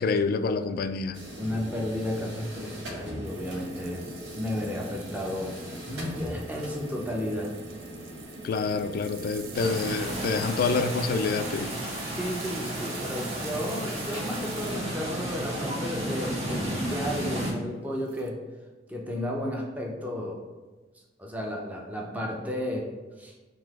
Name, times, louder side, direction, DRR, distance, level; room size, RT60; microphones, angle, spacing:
voice 1, 0.0-1.2 8.4-11.7, left 4 dB, 55° left, 0.3 m, -27 dB
sound 1, 1.1-15.4, equal, 70° right, 1.1 m, -42 dB
voice 2, 1.4-4.1 4.3-5.5 5.9-7.5 12.1-18.4 18.9-20.4 21.2-22.9 23.2-23.3, left 1 dB, 10° right, 0.6 m, -33 dB
sound 2, 3.2-15.0 15.7-15.8 18.0-18.3, right 6 dB, 55° right, 0.4 m, -46 dB
sound 3, 9.5-17.5, right 1 dB, 35° right, 1.2 m, -33 dB
3.8 x 2.8 x 4.7 m
head